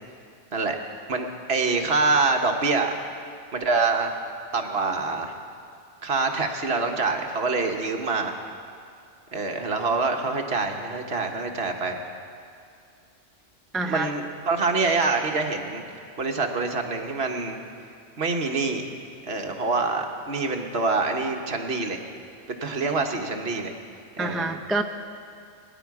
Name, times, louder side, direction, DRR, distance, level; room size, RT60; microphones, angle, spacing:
voice 1, 1.1-2.9 3.5-4.2 4.5-5.3 6.0-8.3 9.3-12.0 13.8-15.8 16.2-17.6 18.2-18.9 19.3-22.0 22.5-23.7 24.2-24.4, right 3 dB, 55° right, 3 dB, 1.3 m, -25 dB
voice 2, 13.7-14.1 24.2-24.8, right 2 dB, ahead, 4 dB, 0.4 m, -26 dB
22.0 x 10.5 x 4.8 m, 2.3 s
omnidirectional pair, 1.3 m